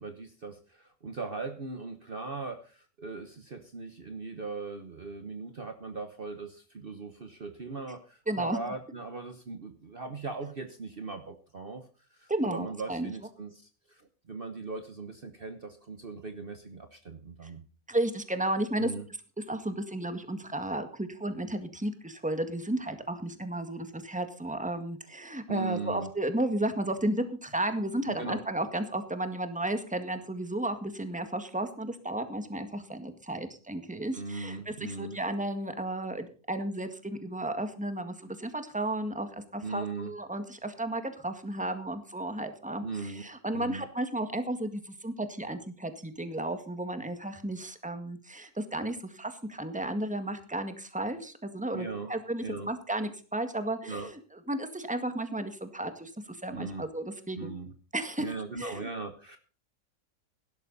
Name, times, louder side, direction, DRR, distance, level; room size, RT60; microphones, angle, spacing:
voice 1, 0.0-17.6 18.8-19.1 25.5-26.1 28.1-28.4 34.1-35.2 39.6-40.1 42.8-43.2 43.5-43.9 51.7-52.1 52.4-52.7 53.9-54.1 56.5-56.9 57.4-57.7 58.2-59.4, right 4 dB, 40° right, 7 dB, 1.3 m, -39 dB
voice 2, 8.3-8.6 12.3-13.1 17.4-17.5 17.9-18.9 19.5-54.2 54.5-57.5 57.9-58.3 58.6-58.9, right 1 dB, 5° right, 8 dB, 1.7 m, -33 dB
16.5 x 12.5 x 4.1 m, 0.37 s
omnidirectional pair, 1.5 m